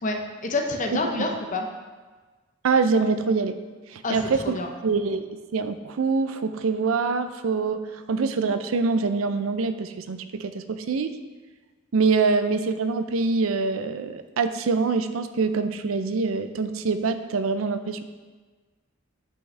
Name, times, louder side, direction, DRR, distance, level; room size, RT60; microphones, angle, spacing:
voice 1, 0.0-1.7 4.0-4.7, left 2 dB, 40° left, 3 dB, 0.7 m, -28 dB
voice 2, 0.9-1.3 2.6-3.6 3.9-4.6 4.8-5.3 5.5-11.1 11.9-18.0, right 4 dB, 90° right, 10 dB, 0.5 m, -25 dB
8.1 x 5.5 x 3.3 m, 1.4 s
head